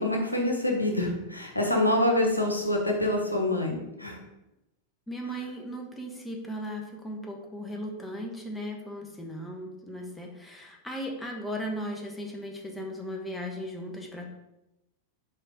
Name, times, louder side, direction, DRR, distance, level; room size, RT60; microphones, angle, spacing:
voice 1, 0.0-4.2, left 1 dB, 85° left, 1 dB, 1.2 m, -26 dB
voice 2, 5.1-14.3, equal, 10° left, 1 dB, 1.2 m, -37 dB
6.4 x 4.4 x 4.9 m, 0.94 s
figure-of-eight pair, 90°, 0 cm